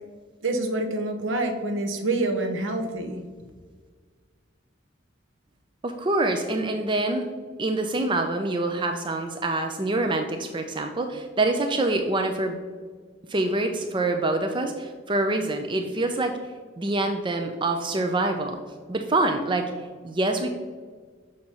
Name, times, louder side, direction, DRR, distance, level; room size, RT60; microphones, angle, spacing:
voice 1, 0.4-3.2, right 2 dB, 70° right, 5 dB, 0.9 m, -27 dB
voice 2, 5.8-7.3 7.6-12.6 13.3-16.4 16.8-18.6 18.9-19.7 20.0-20.5, right 2 dB, 25° right, 5 dB, 0.4 m, -25 dB
6.3 x 4.5 x 5.5 m, 1.5 s
head